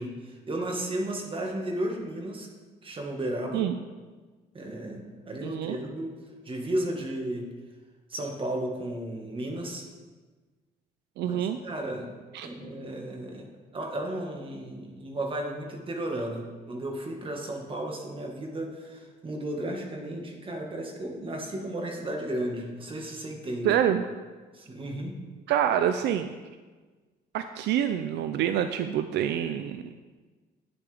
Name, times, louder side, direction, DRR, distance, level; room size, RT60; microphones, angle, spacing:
voice 1, 0.0-2.5 2.8-3.6 4.5-6.1 6.4-7.5 8.1-9.9 11.2-12.1 12.4-13.4 13.7-23.8 24.5-25.1, right 1 dB, 30° right, 1 dB, 1.6 m, -34 dB
voice 2, 5.4-5.8 11.2-11.6 12.3-12.5 23.6-24.1 25.5-26.3 27.3-29.9, right 10 dB, 75° right, 9 dB, 0.4 m, -26 dB
9.9 x 6.9 x 3.4 m, 1.3 s
cardioid pair, 115°, 18 cm